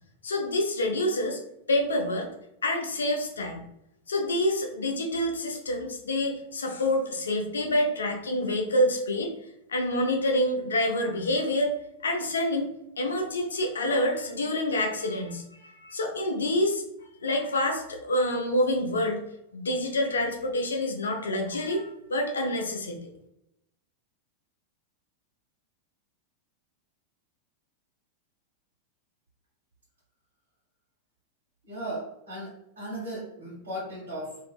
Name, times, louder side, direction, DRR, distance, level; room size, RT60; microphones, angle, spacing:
voice 1, 0.2-1.4 1.7-2.3 2.6-3.6 4.1-9.3 9.7-11.7 12.0-16.8 17.2-19.2 19.5-23.1, left 1 dB, 70° left, 3 dB, 0.5 m, -27 dB
voice 2, 31.6-34.4, right 1 dB, 65° right, -9 dB, 1.5 m, -37 dB
2.7 x 2.6 x 2.3 m, 0.81 s
figure-of-eight pair, 90°, 0 cm